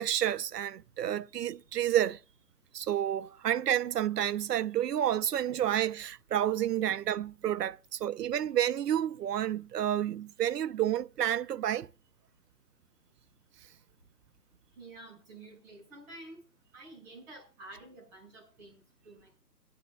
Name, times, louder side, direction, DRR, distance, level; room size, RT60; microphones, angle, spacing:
voice 1, 0.0-2.2 2.7-11.9, right 11 dB, 75° right, 0.6 m, -30 dB
voice 2, 14.8-16.4 16.7-19.4, right 2 dB, 25° right, 6.0 m, -50 dB
25.0 x 9.9 x 2.4 m
hypercardioid pair, 165°, 49 cm